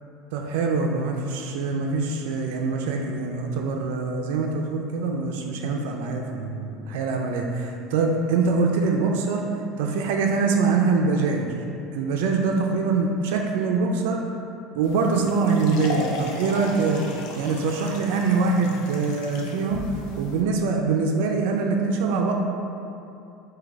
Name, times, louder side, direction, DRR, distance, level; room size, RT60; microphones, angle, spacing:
voice 1, 0.3-9.5 9.8-11.5 11.9-14.2 14.7-17.0 17.4-22.3, right 4 dB, 85° right, 1 dB, 0.4 m, -24 dB
sound 1, 14.8-20.4, left 2 dB, 70° left, 0.5 m, -37 dB
3.9 x 2.7 x 4.5 m, 2.7 s
cardioid pair, 150°, 0 cm